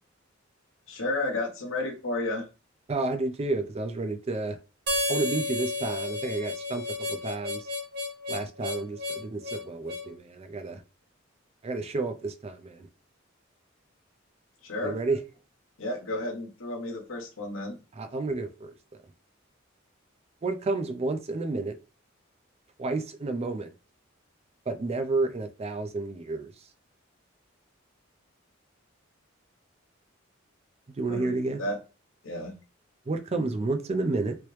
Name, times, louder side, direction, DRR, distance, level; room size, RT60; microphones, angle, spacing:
voice 1, 0.9-2.5 14.6-15.0 15.8-17.7 31.0-31.8 32.2-32.6, left 2 dB, 80° left, 1.0 m, -32 dB
voice 2, 2.9-4.6 5.1-7.7 8.3-10.8 11.6-12.9 14.8-15.2 17.9-18.7 20.4-21.8 22.8-23.7 24.7-26.5 30.9-31.6 33.1-34.4, right 3 dB, 30° right, 0.4 m, -30 dB
Harmonica, 4.9-10.1, left 2 dB, 55° right, 0.8 m, -32 dB
3.0 x 2.9 x 3.2 m
head